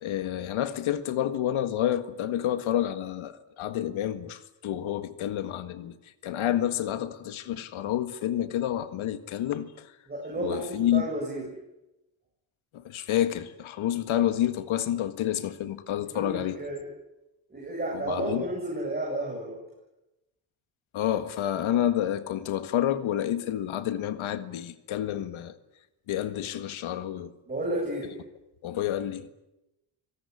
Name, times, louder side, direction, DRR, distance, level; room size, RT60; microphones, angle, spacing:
voice 1, 0.0-5.9 6.2-9.9 10.4-11.0 12.7-16.6 18.1-18.4 20.9-25.5 26.1-27.3 28.6-29.3, left 11 dB, 80° left, 1.8 m, -29 dB
voice 2, 10.1-11.5 16.1-16.9 17.5-19.6 27.5-28.1, right 1 dB, 20° right, 7.9 m, -32 dB
25.5 x 18.0 x 9.9 m
cardioid pair, 120°, 47 cm